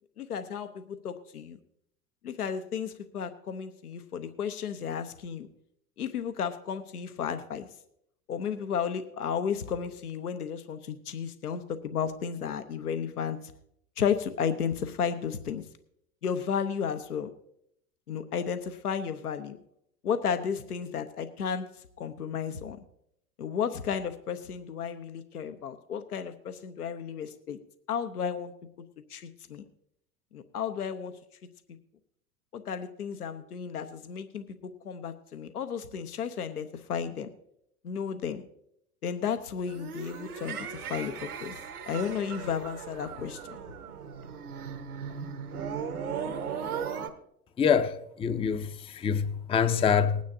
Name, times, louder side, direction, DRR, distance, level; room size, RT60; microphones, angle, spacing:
voice 1, 0.2-1.6 2.2-5.5 6.0-7.7 8.3-13.5 14.0-15.6 16.2-17.3 18.1-19.6 20.0-21.7 22.0-22.8 23.4-27.6 27.9-28.5 29.1-29.6 30.3-31.1 32.5-37.3 37.8-38.4 39.0-41.6 41.9-43.4, left 7 dB, 80° left, 0.9 m, -33 dB
sound 1, 39.6-47.1, right 7 dB, 75° right, 1.3 m, -37 dB
voice 2, 47.6-47.9 48.2-48.7 49.0-50.2, left 7 dB, 15° left, 0.6 m, -24 dB
20.5 x 9.5 x 2.7 m
figure-of-eight pair, 80°, 45 cm